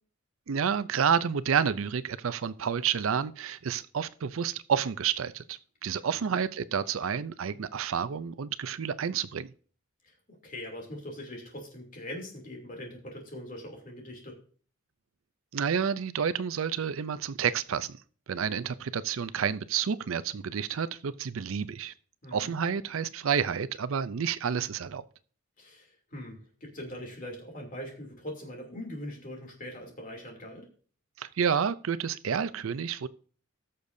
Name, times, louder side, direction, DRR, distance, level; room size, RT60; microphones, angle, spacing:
voice 1, 0.5-9.5 15.5-18.0 18.3-21.9 22.3-25.0 31.2-33.1, right 7 dB, 80° right, 0.5 m, -30 dB
voice 2, 5.8-6.4 10.0-14.4 22.2-22.5 25.6-30.7, left 1 dB, 40° left, 2.9 m, -42 dB
19.5 x 6.6 x 2.7 m
head